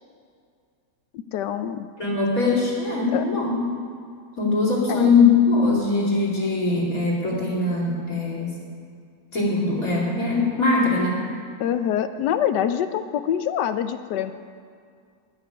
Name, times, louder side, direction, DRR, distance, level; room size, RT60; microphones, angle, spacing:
voice 1, 1.1-1.9 3.1-3.3 4.9-5.1 11.6-14.3, left 9 dB, 90° left, 10 dB, 1.3 m, -25 dB
voice 2, 2.0-3.6 4.4-8.5 9.3-11.2, left 4 dB, 55° left, -4 dB, 2.9 m, -21 dB
11.5 x 8.5 x 9.9 m, 2.2 s
omnidirectional pair, 1.8 m